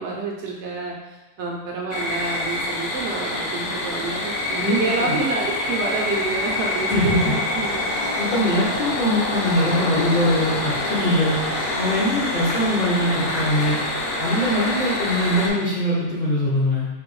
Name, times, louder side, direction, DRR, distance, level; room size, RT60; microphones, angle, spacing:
voice 1, 0.0-7.9 8.3-8.4, right 3 dB, 65° right, -1 dB, 0.8 m, -28 dB
sound 1, 1.9-15.5, left 1 dB, 65° left, 1.0 m, -26 dB
Engine, 3.0-11.7, left 1 dB, 80° left, 1.7 m, -40 dB
voice 2, 4.6-5.2 6.9-7.3 8.2-11.5 11.8-13.8 14.2-16.9, left 1 dB, 45° left, -7 dB, 0.6 m, -22 dB
4.0 x 2.6 x 3.0 m, 1.2 s
omnidirectional pair, 1.4 m